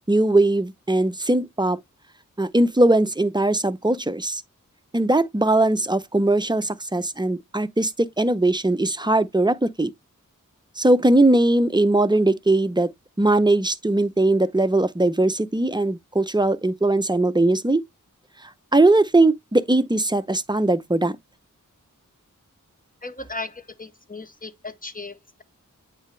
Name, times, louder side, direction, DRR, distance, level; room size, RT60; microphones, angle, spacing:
voice 1, 0.1-1.8 2.4-4.4 4.9-9.9 10.8-12.9 13.2-17.8 18.7-21.2, right 2 dB, 15° right, 0.6 m, -20 dB
voice 2, 23.0-25.4, left 3 dB, 25° left, 0.9 m, -36 dB
8.7 x 4.1 x 3.1 m
wide cardioid pair, 50°, 32 cm